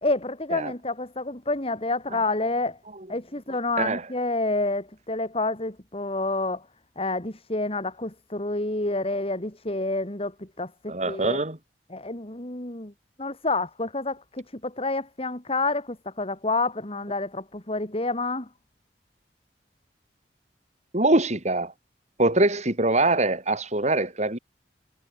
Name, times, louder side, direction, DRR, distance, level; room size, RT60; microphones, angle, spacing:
voice 1, 0.0-2.8 3.1-6.6 7.0-11.4 11.9-12.9 13.2-18.5, left 2 dB, 35° left, 3.0 m, -28 dB
voice 2, 10.9-11.6 20.9-21.7 22.2-24.4, right 2 dB, 40° right, 4.0 m, -23 dB
head